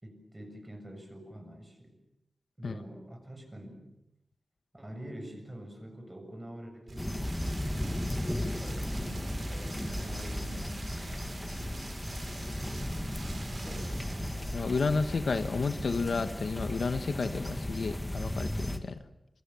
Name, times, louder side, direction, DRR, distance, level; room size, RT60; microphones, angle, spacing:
voice 1, 0.0-2.0 2.6-3.9 4.7-7.3 8.4-11.3 13.5-14.3, right 1 dB, 20° right, 5 dB, 7.1 m, -46 dB
Rain, 6.9-14.6, right 3 dB, 60° right, 4.2 m, -46 dB
sound 1, 7.0-18.8, left 1 dB, 10° left, 2.2 m, -35 dB
voice 2, 14.5-19.0, left 4 dB, 75° left, 9 dB, 1.5 m, -31 dB
27.5 x 23.0 x 7.3 m, 0.84 s
wide cardioid pair, 90°, 0 cm